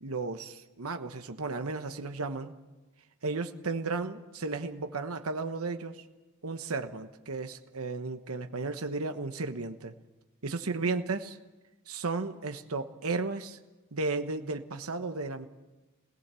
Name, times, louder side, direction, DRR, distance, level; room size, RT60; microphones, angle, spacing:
voice 1, 0.0-2.6 3.2-6.0 6.4-9.9 10.4-11.3 11.9-13.6 13.9-15.5, right 3 dB, 75° right, 7 dB, 1.2 m, -34 dB
26.0 x 18.0 x 7.0 m, 1.2 s
head